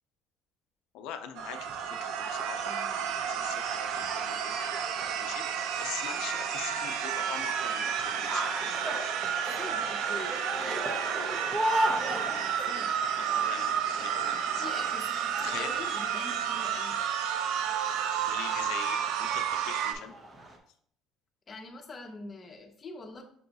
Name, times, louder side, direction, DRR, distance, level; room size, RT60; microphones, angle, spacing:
voice 1, 0.9-4.6 5.2-5.4 5.8-8.6 13.2-14.6 15.4-15.7 17.3-17.5 18.3-20.1, left 9 dB, 85° left, 6 dB, 0.4 m, -42 dB
sound 1, 1.4-20.6, right 1 dB, 25° right, 0.6 m, -38 dB
sound 2, 1.4-19.9, right 8 dB, 75° right, 0.4 m, -31 dB
voice 2, 2.7-3.3 9.5-10.5 12.4-13.0 14.6-17.0 21.5-23.2, left 3 dB, 25° left, 2 dB, 0.6 m, -45 dB
5.9 x 2.3 x 3.9 m, 0.62 s
cardioid pair, 165°, 0 cm